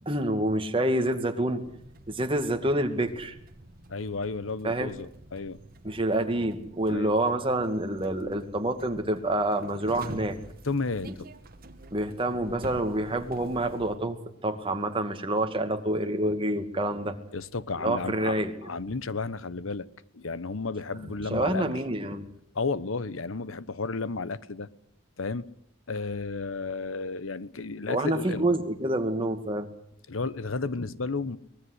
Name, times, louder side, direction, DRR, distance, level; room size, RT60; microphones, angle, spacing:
voice 1, 0.0-1.6 2.1-3.3 4.6-4.9 5.8-10.4 11.1-11.2 11.9-17.2 17.8-18.5 21.3-22.3 27.9-29.7, right 1 dB, 25° right, 2.3 m, -27 dB
sound 1, 1.6-14.0, right 1 dB, 45° right, 1.8 m, -48 dB
voice 2, 3.9-5.6 6.9-7.1 10.6-11.3 17.3-18.4 18.6-19.9 20.1-21.6 22.5-24.7 25.2-25.5 25.9-28.4 30.1-31.4, left 4 dB, 80° left, 1.0 m, -32 dB
24.0 x 20.0 x 8.1 m
head